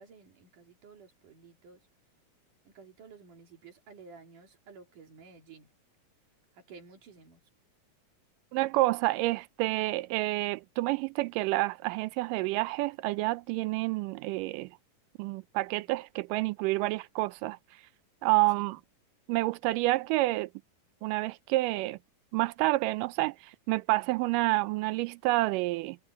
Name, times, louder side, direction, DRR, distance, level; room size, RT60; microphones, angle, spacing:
voice 1, 0.0-1.9 2.6-5.7 6.5-7.4 18.6-18.7, right 5 dB, 65° right, 4.6 m, -53 dB
voice 2, 8.5-14.7 15.2-17.6 18.2-18.8 19.3-20.5 21.0-22.0 22.3-23.4 23.7-26.0, right 20 dB, 80° right, 2.1 m, -28 dB
omnidirectional pair, 3.9 m